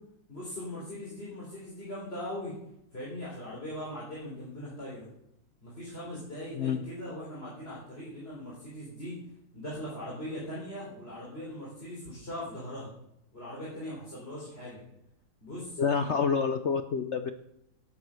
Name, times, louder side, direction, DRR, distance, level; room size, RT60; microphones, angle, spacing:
voice 1, 0.3-2.5 2.9-5.1 5.6-9.2 9.5-12.9 13.3-14.8 15.4-16.2, left 1 dB, 30° left, -6 dB, 3.9 m, -40 dB
voice 2, 15.8-17.3, left 6 dB, 65° left, 9 dB, 0.7 m, -28 dB
12.0 x 8.8 x 6.4 m, 0.80 s
omnidirectional pair, 2.0 m